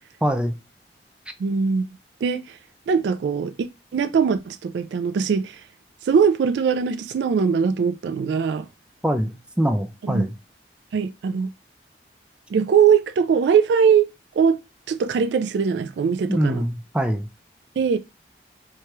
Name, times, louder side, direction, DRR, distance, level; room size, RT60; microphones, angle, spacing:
voice 1, 0.2-0.6 9.0-10.3 16.3-17.2, equal, 5° right, 0.4 m, -23 dB
voice 2, 1.4-1.9 2.2-2.6 2.9-3.5 3.9-5.6 6.0-8.7 10.0-10.3 10.9-11.5 12.5-14.1 14.4-14.6 14.9-16.6 17.8-18.0, right 6 dB, 80° right, 0.3 m, -21 dB
4.6 x 2.3 x 2.9 m
head